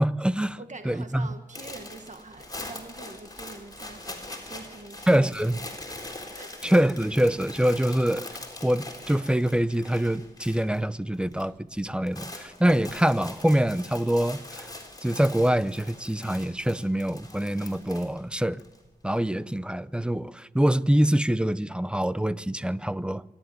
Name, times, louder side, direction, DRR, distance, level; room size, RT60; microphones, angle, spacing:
voice 1, 0.0-0.6 0.8-1.3 5.1-5.6 6.6-8.3 8.6-14.7 15.0-18.6 19.0-23.2, right 1 dB, 5° right, 0.7 m, -25 dB
voice 2, 0.6-6.1 6.3-6.6, right 3 dB, 45° right, 1.8 m, -45 dB
sound 1, 1.5-10.8 11.1-11.5 11.8-18.8, left 2 dB, 25° left, 4.0 m, -42 dB
26.0 x 11.5 x 9.3 m
wide cardioid pair, 75°, 16 cm